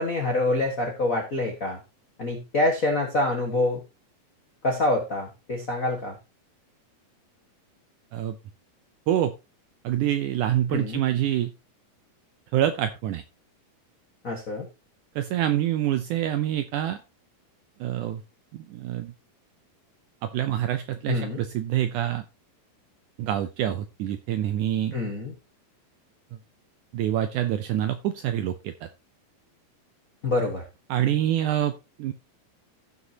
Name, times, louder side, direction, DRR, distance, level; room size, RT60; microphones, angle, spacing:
voice 1, 0.0-1.8 2.2-3.8 4.6-6.2 10.7-11.0 14.2-14.7 21.1-21.4 24.9-25.4 30.2-30.6, left 2 dB, 75° left, 1 dB, 0.7 m, -26 dB
voice 2, 9.8-11.5 12.5-13.2 15.2-17.0 17.8-18.2 18.5-19.1 20.2-22.2 23.2-24.9 26.9-28.7 30.9-31.7 32.0-32.1, right 11 dB, 85° right, 9 dB, 1.8 m, -26 dB
15.5 x 5.8 x 2.8 m, 0.27 s
omnidirectional pair, 4.2 m